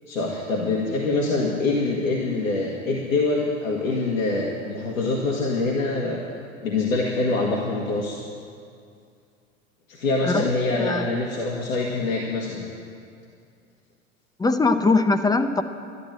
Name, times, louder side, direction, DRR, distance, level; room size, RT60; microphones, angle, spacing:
voice 1, 0.1-6.2 6.6-8.2 9.9-12.6, left 3 dB, 85° left, -3 dB, 1.8 m, -25 dB
voice 2, 14.4-15.6, left 3 dB, 10° left, 9 dB, 0.7 m, -21 dB
12.0 x 11.5 x 7.5 m, 2.4 s
hypercardioid pair, 85°, 39 cm